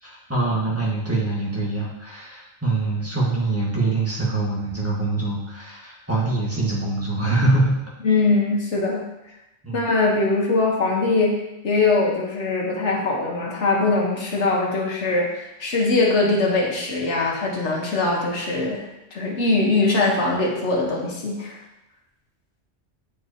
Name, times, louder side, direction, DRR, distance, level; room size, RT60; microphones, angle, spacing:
voice 1, 0.0-7.7 9.6-9.8, right 2 dB, 15° right, -6 dB, 1.4 m, -24 dB
voice 2, 8.0-9.0 9.7-11.4 11.6-18.8 19.1-21.5, left 3 dB, 85° left, -2 dB, 1.4 m, -21 dB
7.6 x 4.6 x 2.7 m, 0.92 s
omnidirectional pair, 1.2 m